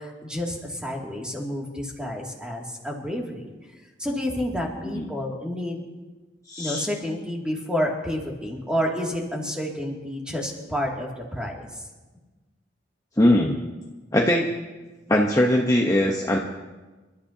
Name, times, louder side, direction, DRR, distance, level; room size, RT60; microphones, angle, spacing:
voice 1, 0.0-3.5 4.0-5.8 6.6-11.8, equal, 5° right, -2 dB, 2.4 m, -29 dB
voice 2, 6.5-6.8 13.2-13.6 14.1-14.5 15.1-16.4, left 1 dB, 20° left, -1 dB, 0.9 m, -20 dB
28.5 x 13.0 x 2.8 m, 1.2 s
head